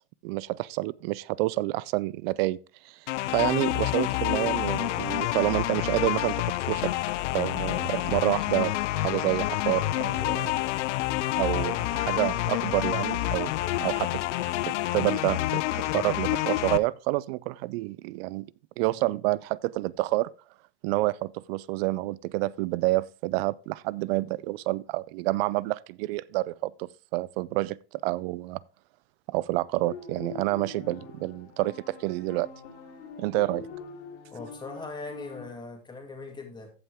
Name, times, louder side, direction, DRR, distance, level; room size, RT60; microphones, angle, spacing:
voice 1, 0.2-2.6 2.8-3.0 3.3-6.9 7.3-8.7 9.0-10.5 11.3-14.2 14.6-18.5 18.8-20.3 20.8-27.8 28.0-28.6 29.3-32.5 33.2-33.7, right 19 dB, 55° right, 0.5 m, -28 dB
sound 1, 3.1-16.8, left 15 dB, 85° left, 0.6 m, -28 dB
sound 2, 29.8-35.4, left 6 dB, 70° left, 3.5 m, -44 dB
voice 2, 34.3-36.7, left 3 dB, 10° left, 2.4 m, -40 dB
15.0 x 5.6 x 3.5 m
supercardioid pair, 135°, 35 cm